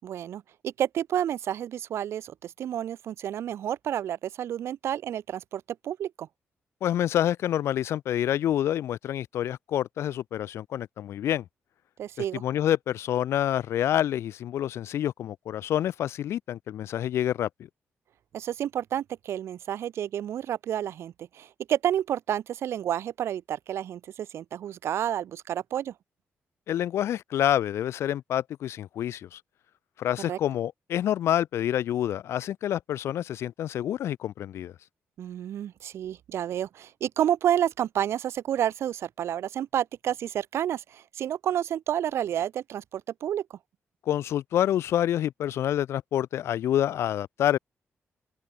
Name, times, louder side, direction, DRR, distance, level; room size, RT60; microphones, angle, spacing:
voice 1, 0.0-6.3 12.0-12.4 18.3-25.9 30.3-30.4 35.2-43.5, right 10 dB, 80° right, 6.5 m, -30 dB
voice 2, 6.8-11.4 12.3-17.7 26.7-29.4 30.0-34.7 44.0-47.6, left 11 dB, 85° left, 1.4 m, -27 dB
cardioid pair, 130°, 4 cm